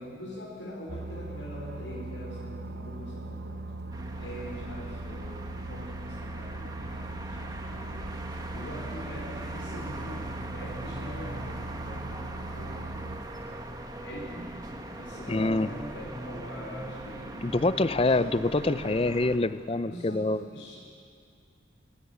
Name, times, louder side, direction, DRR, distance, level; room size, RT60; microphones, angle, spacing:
voice 1, 0.0-3.6 4.2-8.1 8.5-13.5 14.0-14.5 14.9-18.5 19.8-20.2 20.5-20.9, equal, 85° left, -5 dB, 4.8 m, -43 dB
sound 1, 0.9-13.2, right 2 dB, 55° right, 0.7 m, -39 dB
sound 2, 3.9-19.4, right 1 dB, 20° right, 1.5 m, -41 dB
voice 2, 15.3-15.7 17.4-20.4, left 2 dB, 30° left, 14 dB, 0.5 m, -26 dB
25.0 x 18.0 x 8.2 m, 2.4 s
head